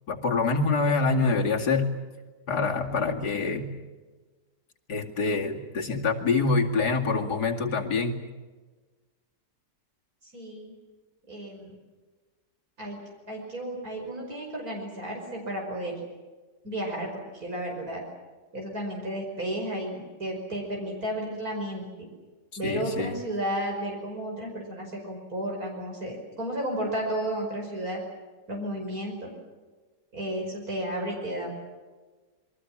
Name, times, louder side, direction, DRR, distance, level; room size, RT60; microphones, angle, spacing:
voice 1, 0.1-1.9 2.5-3.7 4.9-8.2 22.6-23.2, left 4 dB, 65° left, 2 dB, 3.0 m, -25 dB
voice 2, 10.3-10.7 11.3-11.8 12.8-13.0 13.3-15.9 16.6-18.0 18.5-22.1 22.6-28.0 28.5-29.3 30.1-31.5, right 1 dB, 55° right, 0 dB, 5.8 m, -33 dB
28.0 x 23.0 x 7.4 m, 1.3 s
omnidirectional pair, 1.9 m